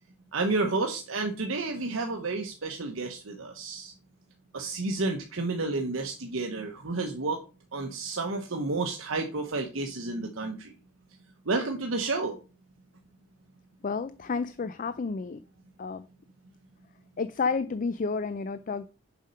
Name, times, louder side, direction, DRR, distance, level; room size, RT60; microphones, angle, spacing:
voice 1, 0.3-3.9 4.5-7.4 7.7-10.7 11.4-12.4, right 3 dB, 80° right, 1.1 m, -31 dB
voice 2, 13.8-15.4 15.8-16.0 17.2-18.9, left 4 dB, 40° left, 0.4 m, -31 dB
7.2 x 5.2 x 5.5 m
head